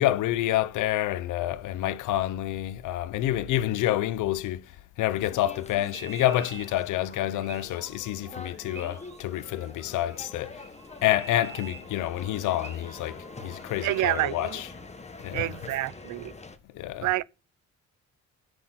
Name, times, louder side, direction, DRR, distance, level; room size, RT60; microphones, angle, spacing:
voice 1, 0.0-4.6 5.0-10.6 11.0-14.7 15.2-15.6 16.7-17.2, left 13 dB, 85° left, 0.7 m, -28 dB
sound 1, 5.1-16.6, left 3 dB, 20° left, 1.3 m, -45 dB
sound 2, 5.7-16.1, right 6 dB, 35° right, 2.2 m, -48 dB
sound 3, 7.7-14.9, right 2 dB, 10° right, 3.9 m, -56 dB
voice 2, 13.8-14.6 15.3-16.3 17.0-17.2, right 16 dB, 80° right, 0.6 m, -28 dB
8.5 x 6.4 x 7.7 m
cardioid pair, 90°, 30 cm